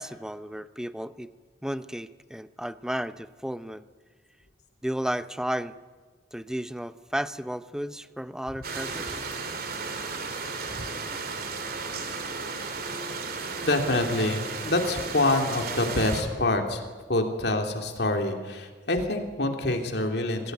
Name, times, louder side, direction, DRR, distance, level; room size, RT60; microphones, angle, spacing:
voice 1, 0.0-1.3 1.6-3.9 4.8-5.8 6.3-9.2, equal, 5° right, 13 dB, 0.6 m, -33 dB
sound 1, 8.6-16.2, right 4 dB, 55° right, 2.7 m, -34 dB
voice 2, 13.6-16.8 17.1-20.5, left 2 dB, 60° left, 4 dB, 3.0 m, -26 dB
24.5 x 17.0 x 9.4 m, 1.5 s
head